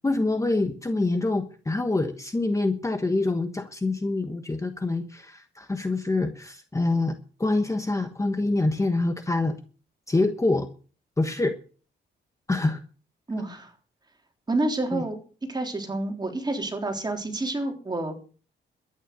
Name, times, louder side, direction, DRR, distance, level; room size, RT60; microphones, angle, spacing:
voice 1, 0.0-7.1 7.4-9.6 10.1-10.7 11.2-11.5 12.5-12.8 14.9-15.0, left 2 dB, 15° left, 8 dB, 1.2 m, -25 dB
voice 2, 13.3-13.7 14.5-15.2 15.5-18.2, right 2 dB, 20° right, 3 dB, 3.6 m, -29 dB
13.0 x 9.9 x 6.8 m, 0.40 s
cardioid pair, 115°, 20 cm